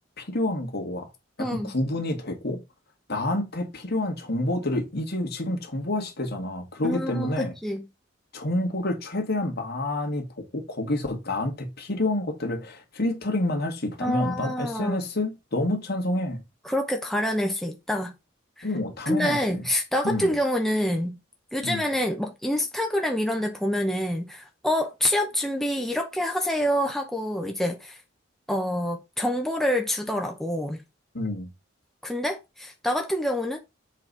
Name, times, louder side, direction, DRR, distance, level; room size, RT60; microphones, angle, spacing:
voice 1, 0.2-1.1 1.4-2.6 3.1-7.5 8.3-10.3 10.5-16.4 18.6-19.4 20.0-20.3 21.6-21.9 31.1-31.5, left 1 dB, 55° left, 2.1 m, -28 dB
voice 2, 1.4-1.7 6.8-7.9 14.0-15.0 16.6-18.1 18.6-18.7 19.1-21.2 21.5-28.0 28.5-30.8 32.0-33.6, left 1 dB, ahead, 0.8 m, -27 dB
7.3 x 4.2 x 4.9 m
head